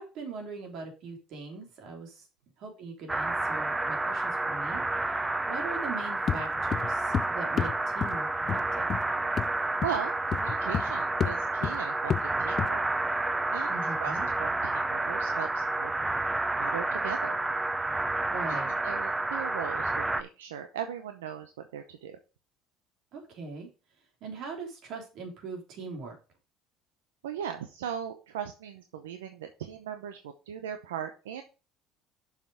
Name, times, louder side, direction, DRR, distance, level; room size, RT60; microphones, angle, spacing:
voice 1, 0.0-2.3 2.6-8.3 8.8-8.9 13.7-14.3 18.3-18.7 23.1-23.7 24.2-26.2, right 4 dB, 60° right, 2 dB, 3.2 m, -41 dB
sound 1, 3.1-20.2, right 2 dB, 15° right, 0.7 m, -30 dB
sound 2, 6.3-6.4 6.7-7.3 7.6-7.8 8.0-8.2 8.5-8.6 8.9-9.0 9.4-9.5 9.8-10.0 10.3-10.9 11.2-11.4 11.6-11.8 12.1-12.3 12.6-12.7, left 8 dB, 45° left, 0.3 m, -29 dB
voice 2, 9.8-12.8 13.5-13.7 14.0-15.9 16.6-17.4 18.5-18.6 18.8-22.2 27.2-31.4, right 9 dB, 90° right, 7 dB, 0.7 m, -38 dB
7.0 x 5.9 x 4.7 m, 0.33 s
hypercardioid pair, 70°, 0 cm